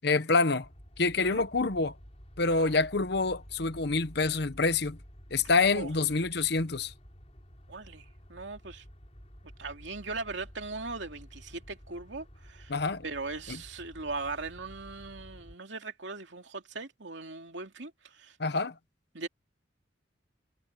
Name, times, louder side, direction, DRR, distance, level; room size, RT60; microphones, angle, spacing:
voice 1, 0.0-0.7 1.0-1.9 2.4-5.0 5.3-6.9 12.7-13.0 13.5-13.6 18.4-18.7, left 3 dB, 60° left, 1.1 m, -27 dB
sound 1, 0.6-15.6, equal, 35° left, 6.2 m, -51 dB
voice 2, 7.7-8.8 9.6-12.7 13.0-18.4 19.1-19.3, right 3 dB, 75° right, 2.7 m, -39 dB
head